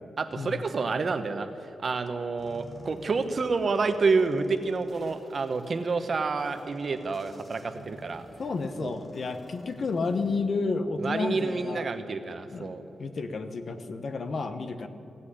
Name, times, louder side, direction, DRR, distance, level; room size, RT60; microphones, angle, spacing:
voice 1, 0.2-1.5 1.8-8.3 8.8-8.9 11.0-12.8, right 4 dB, 45° right, 9 dB, 1.0 m, -28 dB
sound 1, 2.4-10.4, left 1 dB, 25° left, 4.0 m, -50 dB
voice 2, 8.4-11.8 12.5-12.7 13.0-14.9, left 3 dB, 50° left, 9 dB, 1.0 m, -31 dB
16.5 x 8.3 x 9.9 m, 2.9 s
wide cardioid pair, 125°, 0 cm